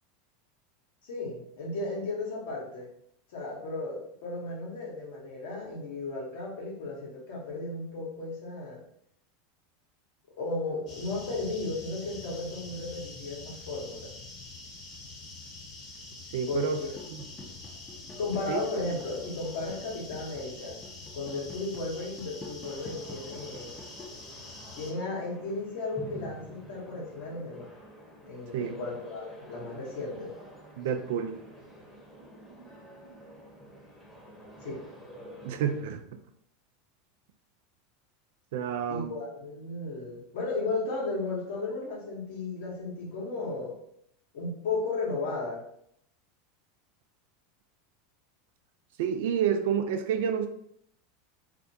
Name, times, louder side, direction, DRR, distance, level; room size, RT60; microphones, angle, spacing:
voice 1, 1.0-2.9 3.3-8.8 10.4-14.1 16.5-16.7 18.2-20.8 21.1-23.7 24.7-27.7 28.3-30.3 34.6-34.8 38.9-43.8 44.3-45.6, left 3 dB, 75° left, -2 dB, 0.9 m, -35 dB
sound 1, 10.9-24.9, left 2 dB, 45° left, 0.9 m, -46 dB
voice 2, 16.3-16.8 17.1-17.3 18.5-18.6 28.5-28.8 30.8-31.4 35.4-36.1 38.5-39.1 49.0-50.5, right 8 dB, 70° right, 7 dB, 0.3 m, -29 dB
sound 2, 16.7-24.2, left 3 dB, 25° left, 0.6 m, -49 dB
sound 3, 22.6-36.0, right 1 dB, ahead, 0.9 m, -49 dB
2.4 x 2.1 x 2.8 m, 0.70 s
hypercardioid pair, 95°, 0 cm